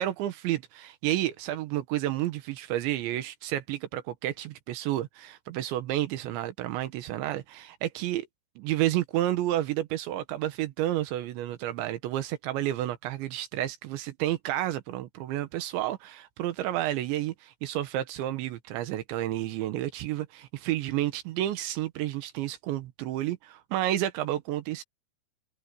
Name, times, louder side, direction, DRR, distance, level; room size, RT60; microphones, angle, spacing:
voice 1, 0.0-8.3 8.6-24.8, right 13 dB, 85° right, 3.5 m, -30 dB
open air
omnidirectional pair, 5.2 m